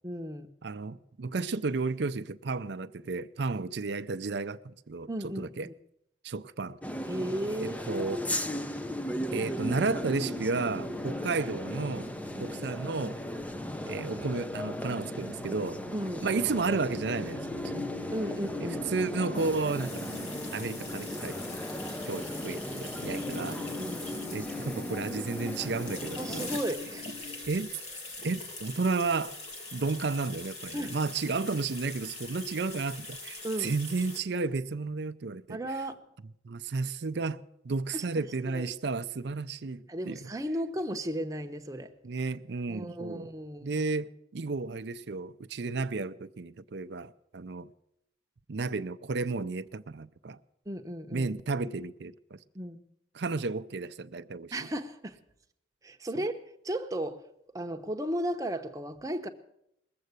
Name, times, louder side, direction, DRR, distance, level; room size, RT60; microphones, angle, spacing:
voice 1, 0.0-0.5 5.1-5.7 7.1-7.8 12.3-12.6 15.9-16.3 18.1-18.9 23.8-24.1 26.2-27.1 30.7-30.9 33.4-33.7 35.5-36.0 37.9-38.7 39.9-41.9 42.7-43.8 50.7-51.3 52.5-52.8 54.5-55.2 55.8-57.2 57.5-59.3, right 1 dB, 15° right, 0.9 m, -35 dB
voice 2, 0.6-5.7 6.2-6.8 7.6-8.2 9.3-12.1 12.4-13.2 13.9-15.8 16.2-17.9 18.6-20.1 20.5-21.4 22.0-23.6 24.3-26.4 27.5-27.7 28.2-29.4 29.7-35.6 36.4-40.3 42.0-43.3 43.6-47.7 48.5-50.4 51.1-52.4 53.1-54.7 56.2-56.3, right 4 dB, 60° right, 0.5 m, -32 dB
sound 1, 6.8-26.6, equal, 5° left, 0.5 m, -37 dB
sound 2, 8.7-27.4, left 3 dB, 65° left, 5.5 m, -44 dB
sound 3, 19.3-34.2, left 2 dB, 35° left, 2.2 m, -43 dB
20.5 x 7.7 x 8.1 m
head